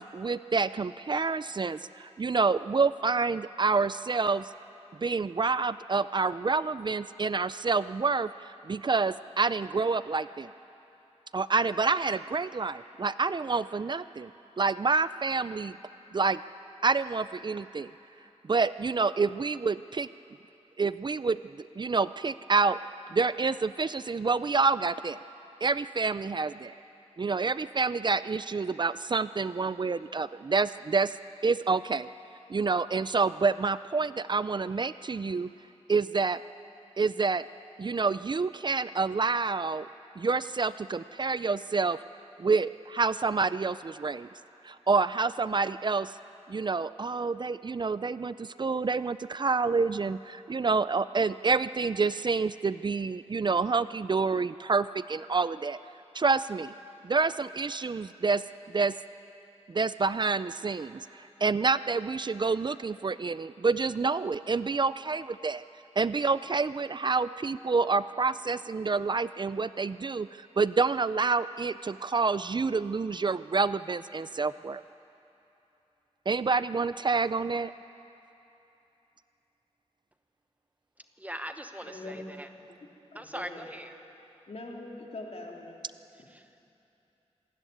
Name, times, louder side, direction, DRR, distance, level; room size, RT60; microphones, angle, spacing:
voice 1, 0.0-4.5 5.0-10.5 11.3-14.3 14.6-15.8 16.1-16.4 16.8-17.9 18.5-20.1 20.8-22.8 23.1-25.2 25.6-26.7 27.2-31.2 31.4-32.1 32.5-35.5 35.9-36.4 37.0-37.4 37.8-39.9 40.2-42.0 42.4-44.3 44.6-46.2 46.5-55.8 56.1-56.7 57.0-58.4 58.7-58.9 59.7-65.6 66.0-74.8 76.3-77.7, right 4 dB, 40° right, 15 dB, 0.4 m, -28 dB
voice 2, 81.2-82.5 83.1-83.9 86.3-86.4, right 1 dB, 15° right, 7 dB, 1.0 m, -40 dB
voice 3, 81.9-82.2 82.7-82.9 83.1-83.7 84.5-85.8, left 2 dB, 65° left, -1 dB, 3.3 m, -42 dB
26.5 x 13.5 x 9.3 m, 3.0 s
wide cardioid pair, 95°, 12 cm